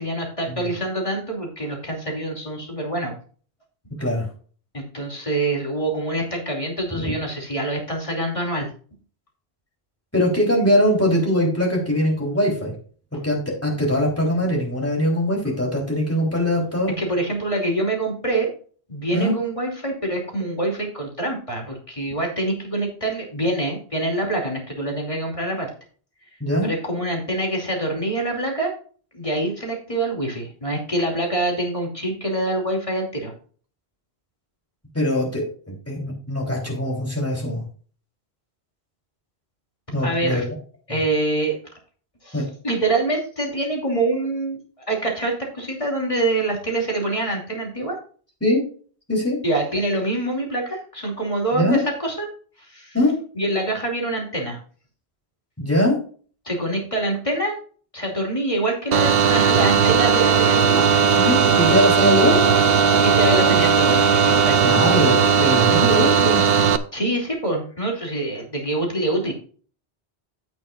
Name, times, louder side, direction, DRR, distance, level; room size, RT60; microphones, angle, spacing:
voice 1, 0.0-3.2 4.7-8.7 17.0-18.5 18.9-25.7 26.6-28.7 29.1-33.3 40.0-40.4 40.9-41.6 42.2-44.6 44.9-48.0 49.4-52.3 52.7-53.0 53.3-54.6 56.4-57.6 57.9-60.9 63.0-64.8 66.9-69.3, right 2 dB, 30° left, 0 dB, 2.8 m, -25 dB
voice 2, 10.1-12.7 13.2-16.9 19.1-19.4 26.4-26.7 34.9-37.6 39.9-40.6 42.3-42.4 48.4-48.6 49.1-49.4 51.5-51.8 52.9-53.2 55.6-56.0 61.2-62.5 64.6-66.4, left 1 dB, 15° left, -2 dB, 3.7 m, -22 dB
sound 1, 58.9-66.8, right 6 dB, 70° right, 0.9 m, -17 dB
15.5 x 6.2 x 2.5 m, 0.43 s
omnidirectional pair, 1.1 m